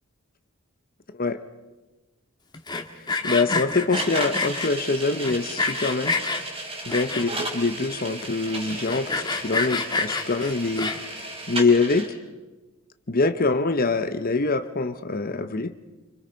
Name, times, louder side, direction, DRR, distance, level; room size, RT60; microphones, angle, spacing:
Sawing, 2.5-4.7 5.2-6.4 6.9-7.5 7.9-8.0 8.2-8.3 8.7-11.2, left 3 dB, 20° left, 1.7 m, -27 dB
voice 1, 3.2-6.2 6.9-10.9 11.5-12.1 13.1-15.7, left 3 dB, 40° left, 10 dB, 0.9 m, -24 dB
sound 1, 3.9-12.1, right 2 dB, 25° right, 3.9 m, -34 dB
29.5 x 25.0 x 5.3 m, 1.1 s
head